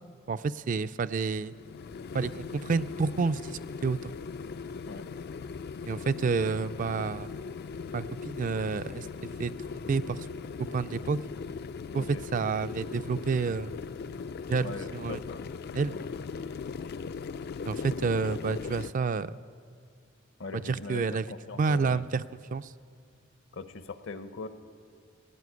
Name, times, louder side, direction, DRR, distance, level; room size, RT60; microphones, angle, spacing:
voice 1, 0.3-1.5 2.1-4.1 5.8-7.3 7.9-9.1 9.4-10.2 10.7-11.2 11.9-13.8 14.5-15.2 15.7-15.9 17.6-19.4 20.5-21.3 21.6-22.2 22.5-22.7, right 4 dB, 40° right, 13 dB, 0.3 m, -29 dB
sound 1, 1.5-18.9, left 5 dB, 55° left, 0.3 m, -39 dB
voice 2, 14.6-15.5 15.9-16.1 20.4-22.1 23.5-24.5, left 3 dB, 70° left, 11 dB, 0.8 m, -41 dB
16.5 x 8.4 x 9.5 m, 2.3 s
head